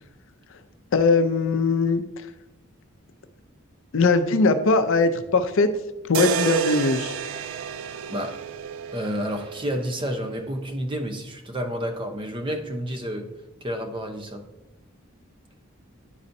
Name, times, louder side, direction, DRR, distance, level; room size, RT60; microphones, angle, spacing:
voice 1, 0.9-2.0 3.9-5.7 6.1-7.2, left 3 dB, 65° left, 9 dB, 0.5 m, -20 dB
sound 1, 6.1-10.2, right 7 dB, 70° right, 0.3 m, -30 dB
voice 2, 8.9-13.3 13.6-14.4, equal, 25° right, 5 dB, 0.7 m, -30 dB
10.0 x 4.2 x 2.6 m, 0.96 s
head